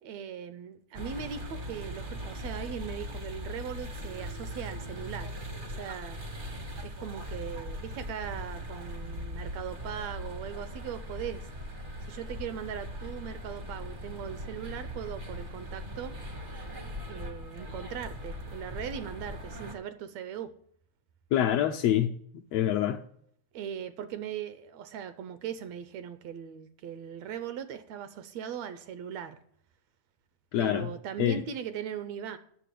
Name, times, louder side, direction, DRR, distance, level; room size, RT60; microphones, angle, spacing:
voice 1, 0.0-5.3 5.6-6.2 6.8-11.5 12.0-16.1 17.1-20.5 23.5-29.4 30.6-32.4, right 8 dB, 75° right, 1.7 m, -39 dB
sound 1, 0.9-19.7, equal, 50° right, 0.6 m, -40 dB
voice 2, 21.3-23.0 30.5-30.9 31.2-31.4, left 11 dB, 80° left, 1.5 m, -26 dB
9.2 x 6.6 x 8.3 m
omnidirectional pair, 3.4 m